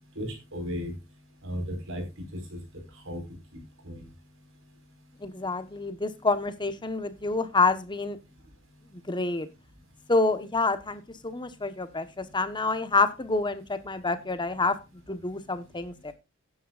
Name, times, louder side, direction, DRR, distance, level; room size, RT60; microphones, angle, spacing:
voice 1, 0.1-0.9 1.4-2.0 2.3-2.6 3.0-3.2 3.5-4.0, equal, 60° right, 5.0 m, -35 dB
voice 2, 5.2-8.2 8.9-9.5 10.1-16.1, left 3 dB, 20° left, 1.1 m, -28 dB
14.0 x 10.0 x 2.5 m
head